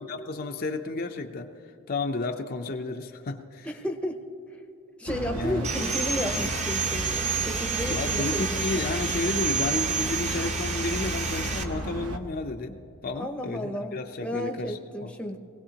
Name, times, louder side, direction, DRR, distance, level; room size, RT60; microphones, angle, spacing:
voice 1, 0.1-1.5 1.9-3.7 5.3-5.7 7.9-15.1, left 3 dB, 40° left, 4 dB, 0.5 m, -32 dB
voice 2, 3.6-4.2 4.5-4.6 5.0-8.9 13.2-15.4, equal, 5° left, 4 dB, 0.7 m, -33 dB
sound 1, 5.1-12.2, right 1 dB, 85° right, 0.9 m, -34 dB
Sawing, 5.6-11.6, right 5 dB, 30° right, 0.8 m, -29 dB
22.0 x 17.0 x 2.8 m, 2.8 s
head